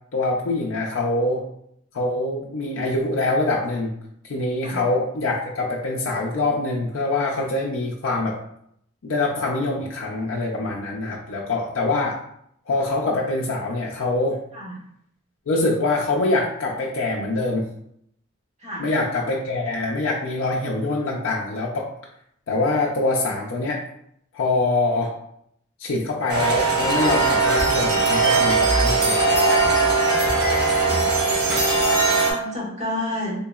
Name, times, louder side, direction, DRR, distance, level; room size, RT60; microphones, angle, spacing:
voice 1, 0.1-1.4 1.9-3.9 4.2-8.4 9.0-12.2 12.7-14.4 15.5-17.6 18.8-21.9 22.5-23.8 24.3-25.1 25.8-29.4 31.5-31.6, left 2 dB, 90° left, -2 dB, 0.5 m, -24 dB
sound 1, 26.3-32.3, right 3 dB, 55° right, 0.9 m, -19 dB
voice 2, 30.7-31.1 32.3-33.3, left 1 dB, 35° right, -5 dB, 1.2 m, -30 dB
3.6 x 2.9 x 2.3 m, 0.73 s
head